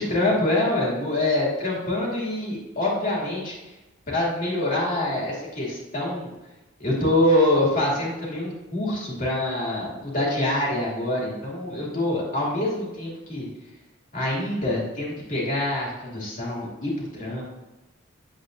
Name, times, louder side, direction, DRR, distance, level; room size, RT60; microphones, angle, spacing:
voice 1, 0.0-3.7 4.1-6.3 6.8-13.5 14.1-17.4, left 1 dB, 40° left, -5 dB, 2.7 m, -25 dB
8.9 x 7.9 x 2.7 m, 1.0 s
head